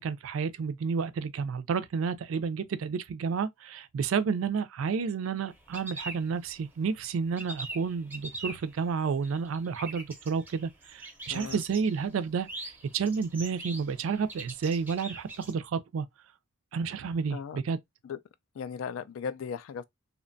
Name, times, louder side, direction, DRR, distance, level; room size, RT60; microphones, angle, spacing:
voice 1, 0.0-16.1 16.7-17.8, right 5 dB, 75° right, 0.3 m, -31 dB
sound 1, 5.5-6.9 7.2-15.5, right 2 dB, 10° right, 0.5 m, -43 dB
voice 2, 11.3-11.6 17.3-17.6 18.0-18.2 18.6-19.8, left 6 dB, 75° left, 0.3 m, -37 dB
2.7 x 2.2 x 2.5 m
head